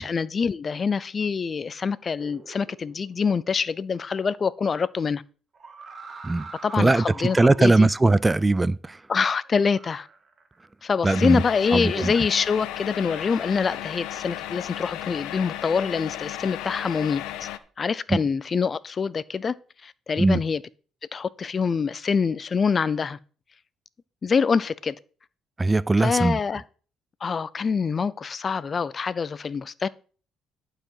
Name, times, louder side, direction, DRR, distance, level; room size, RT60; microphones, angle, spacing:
voice 1, 0.0-5.2 6.6-7.9 9.1-10.1 10.8-17.5 17.8-19.6 19.8-20.6 21.1-23.2 24.2-24.9 26.0-26.6 27.2-29.9, left 5 dB, 40° left, 0.5 m, -25 dB
sound 1, 2.2-3.2 5.5-7.7 9.4-10.8 11.9-14.2, right 4 dB, 40° right, 1.8 m, -45 dB
voice 2, 7.3-9.0 11.0-11.4 11.7-12.1 18.1-18.2 20.2-20.4 25.6-26.4, right 2 dB, 20° right, 0.4 m, -20 dB
sound 2, 11.1-17.6, left 13 dB, 85° left, 0.7 m, -35 dB
11.5 x 4.9 x 5.6 m
supercardioid pair, 80°, 0 cm